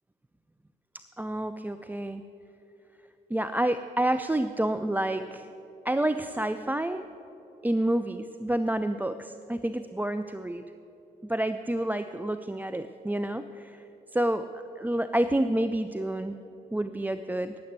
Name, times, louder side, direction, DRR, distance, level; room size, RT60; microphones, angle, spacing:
voice 1, 1.2-2.2 3.3-5.5 5.8-7.0 7.6-10.6 11.2-13.8 14.1-14.5 14.8-16.4 16.7-17.6, right 1 dB, 10° right, 10 dB, 0.4 m, -29 dB
10.5 x 8.5 x 8.1 m, 3.0 s
hypercardioid pair, 45°, 19 cm